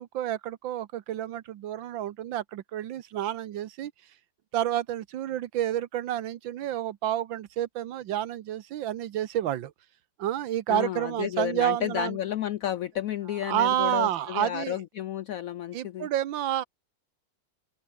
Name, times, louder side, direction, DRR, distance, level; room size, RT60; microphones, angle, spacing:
voice 1, 0.0-3.9 4.5-9.7 10.2-12.2 13.5-14.8 15.7-16.6, right 12 dB, 85° right, 1.7 m, -29 dB
voice 2, 10.7-16.1, left 11 dB, 80° left, 0.7 m, -32 dB
open air
omnidirectional pair, 2.0 m